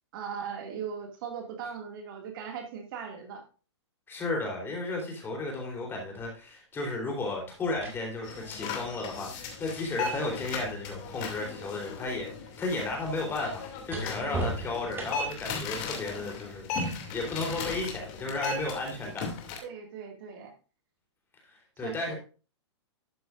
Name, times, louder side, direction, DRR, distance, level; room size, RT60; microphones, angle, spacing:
voice 1, 0.1-3.4 19.6-20.5 21.8-22.1, right 7 dB, 50° right, 4 dB, 2.2 m, -39 dB
voice 2, 4.1-12.3 12.6-19.3 21.8-22.2, left 2 dB, 15° left, 0 dB, 3.6 m, -34 dB
sound 1, 6.2-6.4 7.4-11.5 11.8-15.5 17.6-17.8, right 2 dB, 15° right, 2.0 m, -41 dB
sound 2, 8.2-19.6, left 4 dB, 35° left, 2.6 m, -37 dB
12.0 x 7.8 x 2.5 m, 0.34 s
hypercardioid pair, 145°, 15 cm